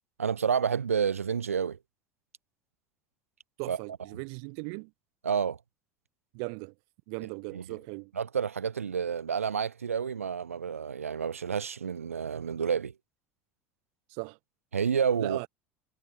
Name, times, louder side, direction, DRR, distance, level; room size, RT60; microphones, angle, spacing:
voice 1, 0.2-1.8 3.7-3.8 5.2-5.6 8.2-12.9 14.7-15.4, right 7 dB, 80° right, 0.5 m, -29 dB
voice 2, 3.6-4.9 6.3-6.7 7.1-8.1 14.1-14.4 15.2-15.5, right 40 dB or more, 55° right, 3.4 m, -38 dB
figure-of-eight pair, 70°, 7 cm